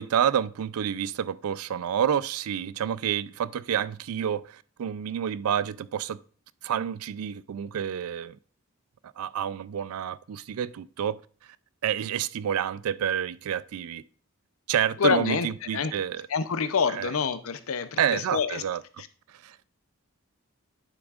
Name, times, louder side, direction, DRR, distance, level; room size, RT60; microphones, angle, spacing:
voice 1, 0.0-6.2 6.6-8.4 9.2-11.2 11.8-14.0 14.7-16.3 16.9-17.1 18.0-18.8 19.4-19.6, right 9 dB, 80° right, 0.3 m, -29 dB
voice 2, 15.0-15.5 15.7-15.9 16.3-18.6 19.0-19.1, left 6 dB, 70° left, 0.6 m, -27 dB
9.8 x 6.1 x 2.4 m
head